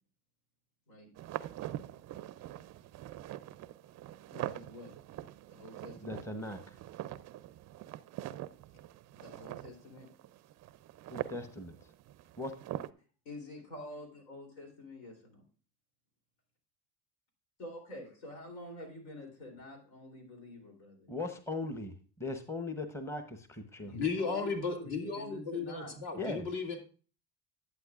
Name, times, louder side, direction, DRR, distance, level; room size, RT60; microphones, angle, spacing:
sound 1, 1.2-12.9, right 13 dB, 35° right, 0.4 m, -44 dB
voice 1, 4.3-4.9 5.5-6.2 9.1-10.1 13.2-15.4 17.6-21.1 23.8-26.0, left 1 dB, 80° left, 3 dB, 3.4 m, -47 dB
voice 2, 6.0-6.6 11.1-11.8 12.4-12.5 21.1-23.9 26.1-26.4, left 2 dB, 5° left, 8 dB, 0.8 m, -39 dB
voice 3, 23.9-26.8, left 4 dB, 55° left, 3 dB, 2.3 m, -35 dB
11.0 x 8.3 x 2.4 m, 0.37 s
supercardioid pair, 100°, 48 cm